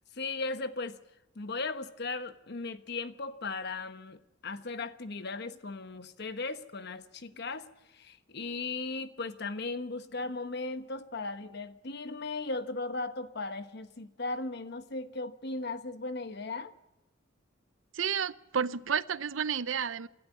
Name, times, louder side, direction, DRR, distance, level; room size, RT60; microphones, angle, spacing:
voice 1, 0.1-1.0 1.3-16.8, left 3 dB, 60° left, 1.1 m, -37 dB
voice 2, 17.9-20.1, right 7 dB, 90° right, 0.7 m, -31 dB
27.5 x 12.0 x 8.5 m
head